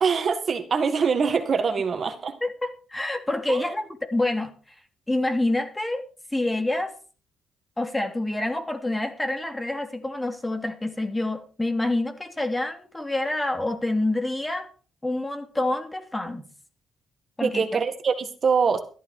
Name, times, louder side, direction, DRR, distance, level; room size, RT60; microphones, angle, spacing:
voice 1, 0.0-2.4 3.5-3.7 17.4-18.8, right 5 dB, 45° right, 8 dB, 1.8 m, -24 dB
voice 2, 2.4-4.5 5.1-6.0 6.3-6.9 7.8-14.7 15.0-16.4 17.4-17.7, left 2 dB, 15° left, 7 dB, 2.7 m, -27 dB
13.5 x 12.0 x 4.8 m, 0.39 s
cardioid pair, 90°, 0 cm